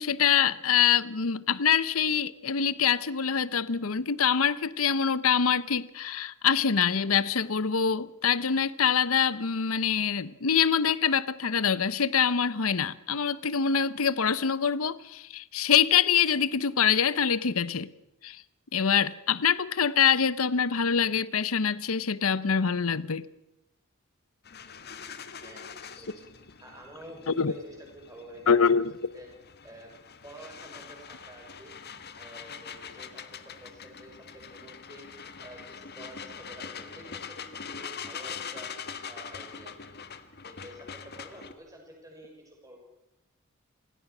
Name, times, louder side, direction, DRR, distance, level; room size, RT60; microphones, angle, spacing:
voice 1, 0.0-17.9 18.2-18.4 18.7-23.3 27.3-27.5 28.5-28.9, left 7 dB, 75° left, 0.8 m, -25 dB
sound 1, 24.4-41.5, left 6 dB, 50° left, 1.5 m, -43 dB
voice 2, 25.4-26.3 26.6-28.8 29.1-29.3 29.6-29.9 30.2-31.7 32.1-35.1 35.4-38.7 39.0-40.0 40.4-42.8, right 1 dB, 15° right, 6.4 m, -49 dB
27.5 x 16.5 x 6.1 m
head